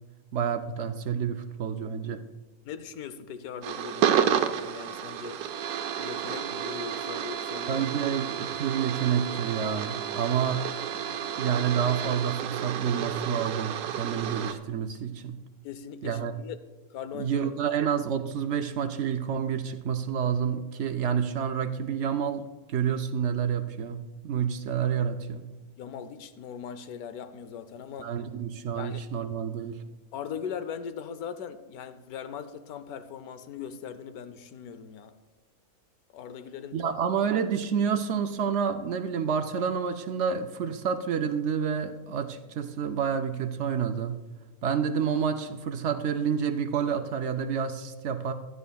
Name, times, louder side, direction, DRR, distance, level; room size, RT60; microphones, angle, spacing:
voice 1, 0.3-2.2 7.7-10.7 11.4-15.4 16.0-16.4 17.1-25.5 28.0-29.8 36.7-44.2 44.6-48.3, right 7 dB, 65° right, 0.7 m, -29 dB
voice 2, 2.6-5.4 5.9-7.9 15.6-16.6 16.9-17.4 25.8-28.2 28.8-29.0 30.1-35.2 36.1-37.0, left 7 dB, 80° left, 1.2 m, -40 dB
sound 1, 3.6-14.5, right 9 dB, 90° right, 1.2 m, -31 dB
15.5 x 11.0 x 2.3 m
omnidirectional pair, 1.6 m